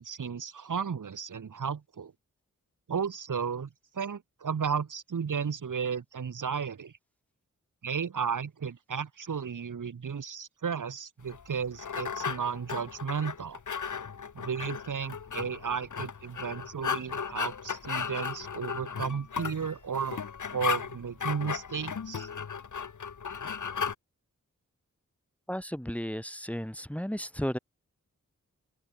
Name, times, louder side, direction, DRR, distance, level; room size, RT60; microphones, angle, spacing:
voice 1, 0.0-2.1 2.9-6.9 7.8-13.6 14.3-20.2 20.5-22.3, right 6 dB, 75° right, 4.8 m, -34 dB
sound 1, 11.3-23.9, left 6 dB, 70° left, 3.1 m, -35 dB
voice 2, 25.5-27.6, equal, 5° left, 3.9 m, -34 dB
open air
cardioid pair, 60°, 31 cm